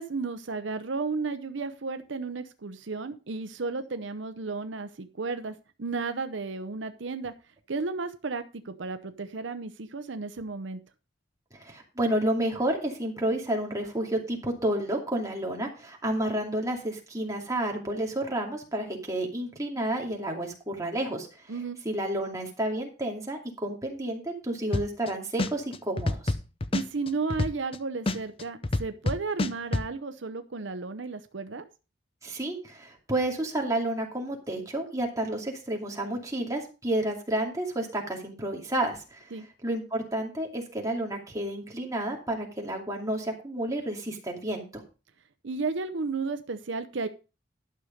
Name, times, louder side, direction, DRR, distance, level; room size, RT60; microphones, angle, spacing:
voice 1, 0.0-7.3 7.7-10.8 21.5-21.8 26.7-31.6 39.3-39.4 45.4-47.1, right 4 dB, 75° right, 10 dB, 0.7 m, -33 dB
voice 2, 11.5-21.5 21.8-26.3 32.2-39.3 39.6-44.8, right 1 dB, 15° right, 0 dB, 2.5 m, -30 dB
sound 1, 24.7-25.1 25.4-27.8 28.1-29.9, left 2 dB, 30° left, 0.6 m, -27 dB
12.0 x 6.5 x 5.1 m, 0.32 s
head